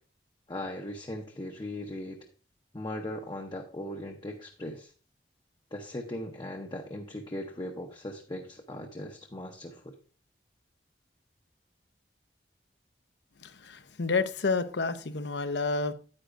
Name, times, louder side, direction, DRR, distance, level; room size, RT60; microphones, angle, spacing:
voice 1, 0.5-2.2 2.7-4.9 5.7-10.0, left 1 dB, 25° left, 0.7 m, -39 dB
voice 2, 13.4-15.9, left 4 dB, 80° left, 0.7 m, -30 dB
9.7 x 9.1 x 2.5 m
head